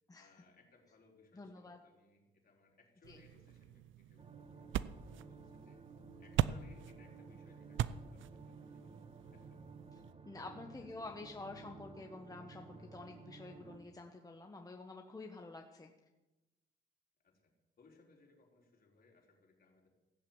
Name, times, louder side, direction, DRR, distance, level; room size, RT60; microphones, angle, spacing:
voice 1, 0.2-5.8 6.2-9.6 10.4-11.2 17.2-19.9, left 3 dB, 50° left, 0 dB, 4.1 m, -67 dB
voice 2, 1.4-1.8 3.1-3.2 10.2-15.9, left 3 dB, 20° left, 3 dB, 1.2 m, -49 dB
sound 1, 3.0-10.1, right 12 dB, 75° right, 0.5 m, -41 dB
sound 2, 4.2-13.8, right 4 dB, 30° right, 1.3 m, -55 dB
16.0 x 7.4 x 8.6 m, 1.1 s
cardioid pair, 90°, 20 cm